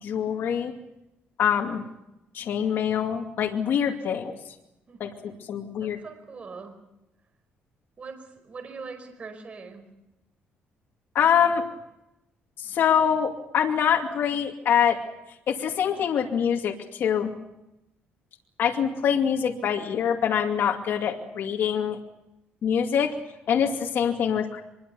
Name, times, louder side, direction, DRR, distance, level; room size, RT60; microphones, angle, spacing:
voice 1, 0.0-0.7 1.4-1.8 2.3-4.4 5.0-6.0 11.1-11.6 12.6-15.0 15.5-17.3 18.6-22.0 22.6-23.2 23.5-24.6, left 8 dB, 60° left, 2 dB, 2.5 m, -24 dB
voice 2, 5.8-6.8 8.0-9.8, right 4 dB, 35° right, 6 dB, 5.1 m, -41 dB
25.0 x 22.5 x 7.0 m, 0.92 s
cardioid pair, 125°, 4 cm